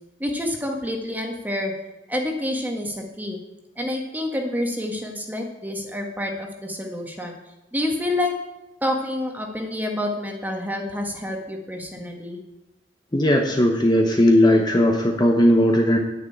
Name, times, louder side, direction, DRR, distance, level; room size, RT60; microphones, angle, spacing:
voice 1, 0.2-1.7 2.1-3.4 3.8-7.4 7.7-8.3 8.8-12.4, left 1 dB, 10° right, 2 dB, 1.5 m, -28 dB
voice 2, 13.1-16.0, left 1 dB, 25° left, 2 dB, 1.0 m, -17 dB
9.9 x 6.6 x 8.7 m, 0.98 s
head